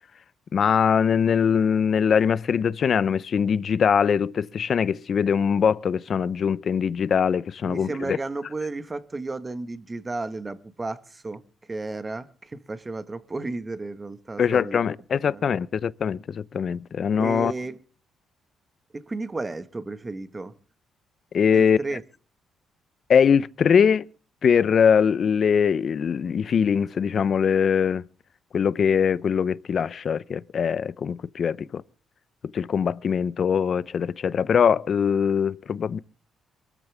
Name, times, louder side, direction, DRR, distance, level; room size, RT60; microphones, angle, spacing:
voice 1, 0.5-8.2 14.4-17.5 21.3-21.8 23.1-24.1 24.4-28.0 28.5-31.8 32.5-36.0, left 7 dB, 50° left, 0.7 m, -22 dB
voice 2, 7.6-11.4 11.7-15.4 17.1-17.8 18.9-20.5 21.5-22.0, right 3 dB, 25° right, 1.6 m, -33 dB
23.5 x 13.5 x 3.5 m
cardioid pair, 90°, 0 cm